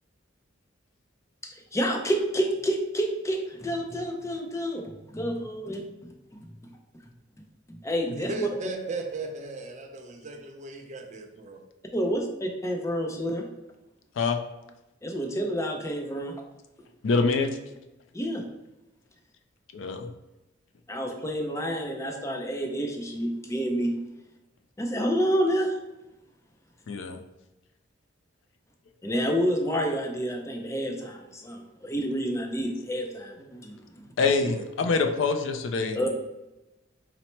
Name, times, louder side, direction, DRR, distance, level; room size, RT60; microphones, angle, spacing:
voice 1, 1.4-6.5 7.7-8.5 11.9-12.2 12.6-13.5 15.0-16.3 18.1-18.4 20.9-23.9 24.8-25.8 29.0-34.1 35.9-36.1, equal, 15° left, 2 dB, 0.5 m, -29 dB
voice 2, 8.1-11.6 34.4-34.7, right 2 dB, 40° right, 3 dB, 0.5 m, -37 dB
voice 3, 17.0-17.6 19.7-20.0 26.9-27.2 34.2-36.0, left 4 dB, 70° left, 6 dB, 0.4 m, -25 dB
4.2 x 2.0 x 4.3 m, 0.98 s
head